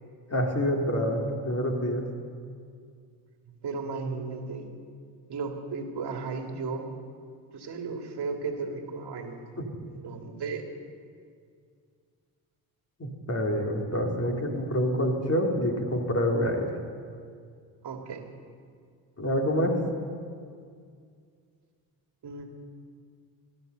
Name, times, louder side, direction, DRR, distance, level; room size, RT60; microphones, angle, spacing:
voice 1, 0.3-2.1 9.6-9.7 13.0-16.7 19.2-19.8, equal, 30° left, 1 dB, 2.8 m, -27 dB
voice 2, 3.4-4.7 5.3-6.9 7.5-9.4 9.9-10.7 17.8-18.3 22.2-22.5, right 4 dB, 55° right, 3 dB, 2.3 m, -35 dB
16.0 x 11.0 x 6.7 m, 2.2 s
hypercardioid pair, 55°, 47 cm